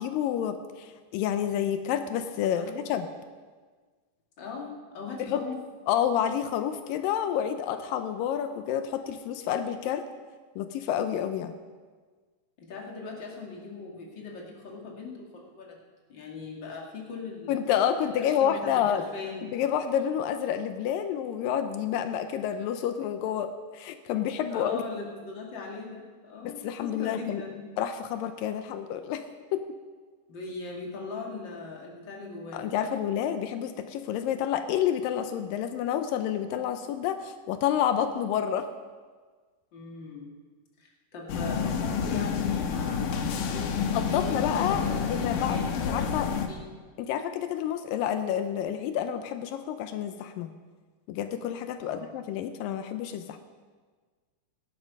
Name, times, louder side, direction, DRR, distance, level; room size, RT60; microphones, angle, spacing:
voice 1, 0.0-3.1 5.3-5.4 5.9-10.0 10.6-11.6 17.5-19.0 19.4-24.8 26.4-27.4 27.8-29.2 29.5-29.6 32.5-38.7 43.9-45.6 45.9-46.3 47.0-50.5 51.1-53.4, left 9 dB, 85° left, 8 dB, 2.5 m, -29 dB
voice 2, 4.4-5.6 12.6-15.8 16.1-17.7 18.1-19.5 24.5-27.7 30.3-32.9 39.7-40.3 40.8-45.8 46.2-46.7 51.8-52.1, left 4 dB, 35° left, -2 dB, 2.8 m, -40 dB
sound 1, 41.3-46.5, left 6 dB, 70° left, 2.5 m, -29 dB
18.0 x 10.5 x 5.4 m, 1.5 s
omnidirectional pair, 4.0 m